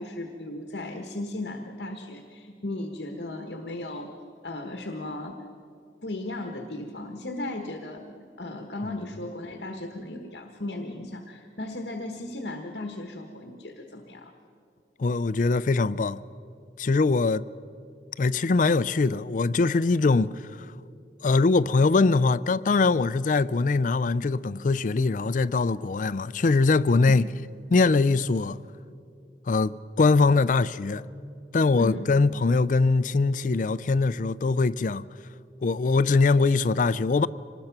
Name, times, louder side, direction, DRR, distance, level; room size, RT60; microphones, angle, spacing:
voice 1, 0.0-4.1 4.4-5.4 6.0-8.0 8.4-14.3 31.8-32.1, left 2 dB, 70° left, 1.3 m, -36 dB
voice 2, 15.0-16.2 16.8-17.4 18.2-20.5 21.2-27.3 27.7-28.6 29.5-31.0 31.5-35.1 35.6-37.3, left 3 dB, 45° left, 0.4 m, -22 dB
25.5 x 20.0 x 5.9 m
head